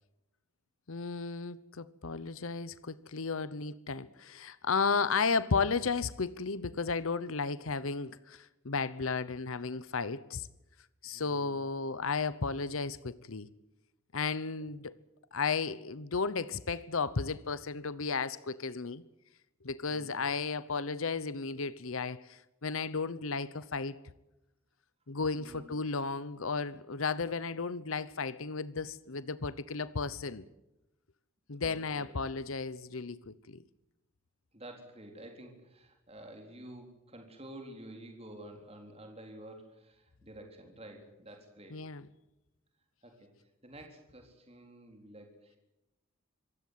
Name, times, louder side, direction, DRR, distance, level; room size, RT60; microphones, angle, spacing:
voice 1, 0.9-10.5 11.0-13.5 14.1-14.9 15.3-19.0 19.6-24.0 25.1-30.4 31.5-33.6 41.7-42.0, left 4 dB, 70° left, 0.9 m, -34 dB
voice 2, 11.1-11.7 14.6-14.7 19.9-20.2 25.3-25.9 31.6-32.2 34.5-41.7 43.0-43.3 43.6-45.6, right 1 dB, 30° right, 3.8 m, -50 dB
26.0 x 16.0 x 9.4 m
head